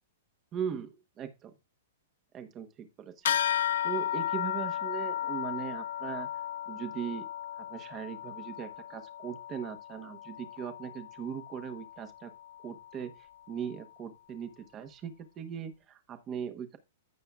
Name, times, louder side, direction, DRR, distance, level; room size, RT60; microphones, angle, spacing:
voice 1, 0.5-1.5 2.3-3.4 3.8-6.3 6.7-7.3 7.6-12.3 12.6-13.1 13.5-16.8, right 8 dB, 25° right, 1.0 m, -39 dB
sound 1, 3.2-13.1, left 11 dB, 70° left, 0.4 m, -35 dB
14.5 x 5.6 x 2.4 m
hypercardioid pair, 155°, 0 cm